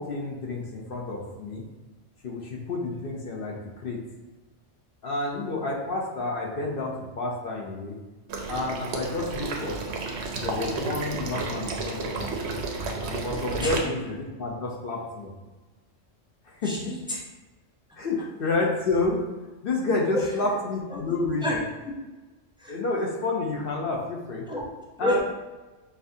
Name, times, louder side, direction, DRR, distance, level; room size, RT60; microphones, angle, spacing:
voice 1, 0.0-1.6 2.2-4.0 5.0-8.0 8.5-9.8 10.4-12.4 13.0-15.3 16.5-16.7 18.0-19.2 19.6-21.6 22.7-24.5 25.0-25.2, left 3 dB, 55° left, -2 dB, 0.7 m, -29 dB
Water / Liquid, 8.3-13.8, right 3 dB, 65° right, 0.8 m, -32 dB
voice 2, 16.6-17.2 20.1-20.3 20.9-21.6 22.6-22.7 24.5-24.6 25.0-25.2, left 1 dB, 5° right, -4 dB, 0.3 m, -29 dB
5.4 x 2.5 x 2.6 m, 1.2 s
omnidirectional pair, 1.3 m